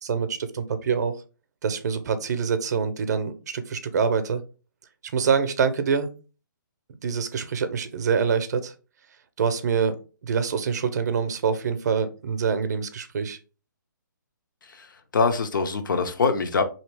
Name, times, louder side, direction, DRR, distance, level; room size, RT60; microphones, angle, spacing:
voice 1, 0.0-1.1 1.6-4.4 5.1-6.1 7.0-8.7 9.4-10.0 10.2-13.4, right 6 dB, 55° right, 0.5 m, -25 dB
voice 2, 14.6-16.6, left 4 dB, 75° left, 0.6 m, -24 dB
2.9 x 2.8 x 3.2 m
hypercardioid pair, 150°, 11 cm